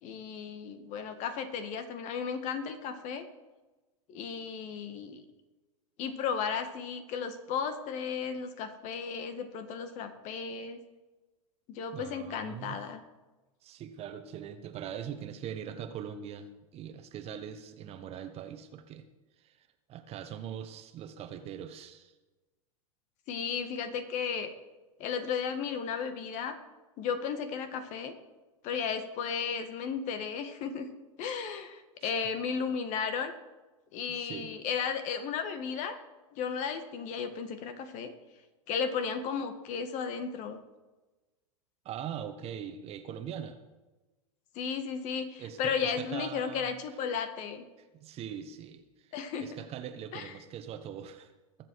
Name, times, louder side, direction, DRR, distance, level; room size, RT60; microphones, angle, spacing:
voice 1, 0.0-3.2 4.1-5.2 6.0-10.8 11.7-13.0 23.3-24.5 25.0-26.6 27.0-28.1 28.6-30.9 31.2-33.3 33.9-36.0 36.3-38.1 38.7-40.6 44.5-47.6 49.1-49.5 50.1-50.3, left 6 dB, 45° left, 9 dB, 1.7 m, -34 dB
voice 2, 11.9-12.8 13.6-19.0 19.4-22.1 32.0-32.2 34.1-34.5 41.8-43.6 45.4-46.7 47.8-49.1 49.4-51.3, right 9 dB, 35° right, 8 dB, 1.4 m, -42 dB
21.0 x 7.6 x 4.8 m, 1.1 s
hypercardioid pair, 100°, 17 cm